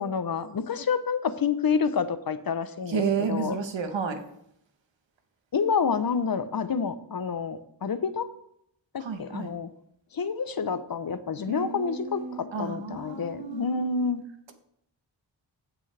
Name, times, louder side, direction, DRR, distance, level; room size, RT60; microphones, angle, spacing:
voice 1, 0.0-3.6 5.5-8.3 8.9-9.7 10.1-14.2, left 5 dB, 55° left, 12 dB, 0.8 m, -28 dB
voice 2, 2.9-4.2 9.0-9.5 11.5-13.7, right 5 dB, 90° right, 6 dB, 1.3 m, -31 dB
15.5 x 6.2 x 3.4 m, 0.74 s
wide cardioid pair, 80°, 43 cm